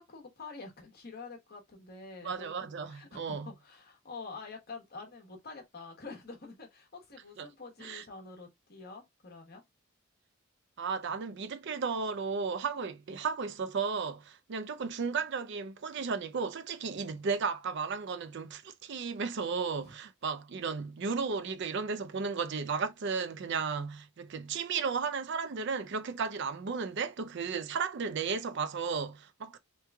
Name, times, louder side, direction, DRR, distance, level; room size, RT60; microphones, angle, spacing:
voice 1, 0.0-9.6 19.8-19.9, left 4 dB, 45° left, 1.1 m, -47 dB
voice 2, 2.2-3.5 7.4-7.5 7.8-8.0 10.8-29.6, right 5 dB, 55° right, 0.4 m, -34 dB
3.1 x 2.3 x 3.4 m
head